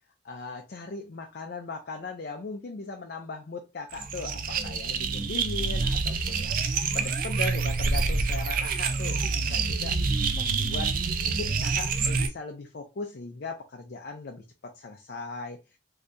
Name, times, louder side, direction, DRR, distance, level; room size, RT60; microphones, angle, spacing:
voice 1, 0.2-6.6 6.9-10.0 10.3-10.9 11.2-15.6, left 3 dB, 55° left, 0.4 m, -38 dB
sound 1, 3.9-12.3, right 4 dB, 50° right, 0.4 m, -27 dB
3.4 x 2.7 x 2.5 m
head